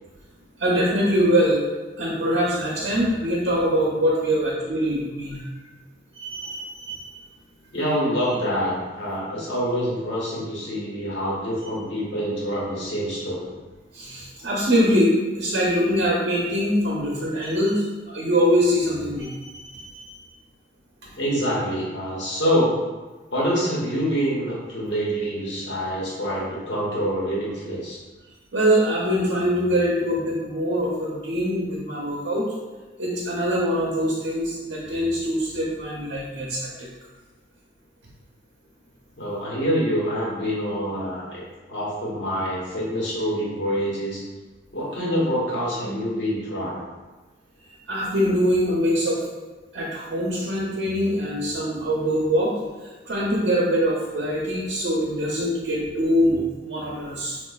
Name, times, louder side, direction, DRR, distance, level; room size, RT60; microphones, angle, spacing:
voice 1, 0.6-1.6 2.0-5.6 6.2-7.1 13.9-20.1 28.5-32.4 33.0-36.9 47.9-49.2 49.7-52.5 52.8-57.4, equal, 70° right, -4 dB, 0.6 m, -23 dB
voice 2, 7.7-13.6 21.2-22.8 23.3-28.0 39.2-41.4 41.7-44.2 44.7-46.8, equal, 80° left, -6 dB, 1.1 m, -26 dB
4.8 x 2.4 x 2.3 m, 1.2 s
head